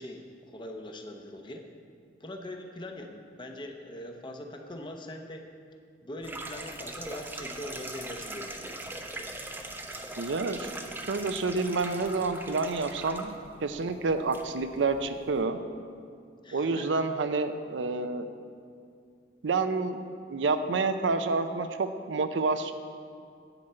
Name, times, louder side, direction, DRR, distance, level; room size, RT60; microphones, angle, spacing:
voice 1, 0.0-1.7 2.2-5.5 6.0-8.8 16.4-17.1, left 1 dB, 25° left, 3 dB, 0.7 m, -42 dB
sound 1, 6.2-15.4, right 2 dB, 10° right, 0.5 m, -41 dB
voice 2, 10.2-10.7 11.1-15.6 16.5-18.3 19.4-20.0 20.3-22.7, right 3 dB, 85° right, 9 dB, 0.5 m, -29 dB
10.0 x 7.9 x 4.3 m, 2.3 s
head